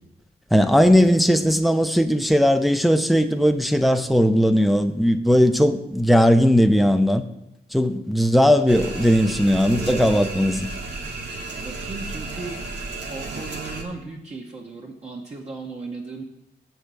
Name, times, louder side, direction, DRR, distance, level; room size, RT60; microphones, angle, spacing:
voice 1, 0.5-7.2 7.7-10.7, equal, ahead, 8 dB, 0.5 m, -18 dB
sound 1, 8.7-13.8, right 3 dB, 80° right, 1.4 m, -32 dB
voice 2, 11.6-12.8 13.1-16.2, right 3 dB, 40° right, -1 dB, 0.9 m, -36 dB
7.2 x 4.5 x 6.7 m, 0.82 s
cardioid pair, 105°, 17 cm